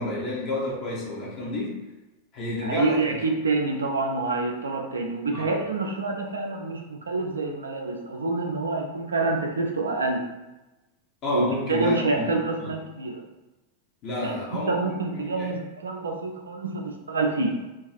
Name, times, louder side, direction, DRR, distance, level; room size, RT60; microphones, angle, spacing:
voice 1, 0.0-1.8 2.3-3.2 5.3-5.5 11.2-12.3 12.6-12.7 14.0-15.5, left 1 dB, 35° left, -4 dB, 0.6 m, -30 dB
voice 2, 2.6-10.3 11.3-13.2 14.2-17.6, right 3 dB, 70° right, 2 dB, 0.4 m, -27 dB
2.4 x 2.2 x 2.4 m, 1.0 s
figure-of-eight pair, 90°, 0 cm